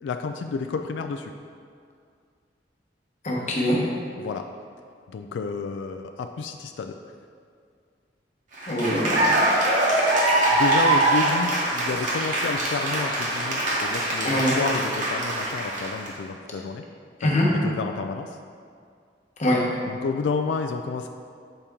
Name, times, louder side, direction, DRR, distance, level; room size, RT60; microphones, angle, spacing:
voice 1, 0.0-1.3 4.2-4.5 5.1-7.0 10.5-16.8 17.2-18.4 19.9-21.1, left 4 dB, 80° left, 6 dB, 0.3 m, -30 dB
voice 2, 3.2-3.8 8.7-9.5 14.2-14.5 17.2-17.5 19.4-19.6, left 1 dB, 40° left, -3 dB, 1.0 m, -23 dB
Cheering / Applause, 8.5-16.1, right 2 dB, 45° right, 1.1 m, -23 dB
6.7 x 4.3 x 3.6 m, 2.2 s
head